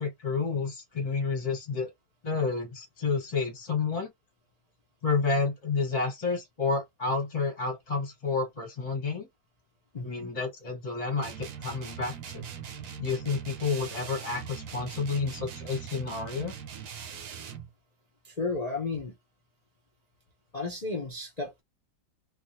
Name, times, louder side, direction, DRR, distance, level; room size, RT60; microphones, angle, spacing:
voice 1, 0.0-1.9 2.2-4.1 5.0-9.3 10.0-12.5 13.0-16.5, left 4 dB, 25° left, 0.9 m, -30 dB
voice 2, 9.9-10.3 18.2-19.2 20.5-21.6, left 3 dB, 80° left, 0.3 m, -33 dB
sound 1, 11.2-17.7, right 8 dB, 65° right, 1.0 m, -41 dB
3.3 x 2.6 x 3.0 m
omnidirectional pair, 2.1 m